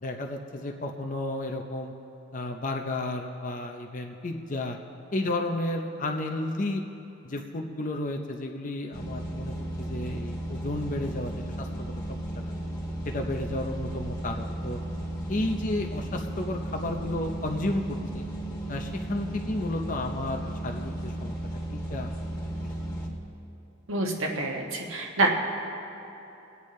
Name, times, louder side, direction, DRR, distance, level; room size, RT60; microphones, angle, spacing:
voice 1, 0.0-1.9 2.3-4.8 5.1-6.8 7.2-11.3 11.6-12.2 13.1-14.8 15.3-18.3 18.7-21.3 21.7-22.2 22.6-22.8, left 2 dB, 40° left, 2 dB, 0.6 m, -32 dB
sound 1, 8.9-23.1, right 1 dB, 20° left, 1.4 m, -35 dB
voice 2, 23.9-25.3, right 2 dB, 80° right, 1 dB, 1.4 m, -27 dB
24.0 x 8.3 x 3.2 m, 2.9 s
head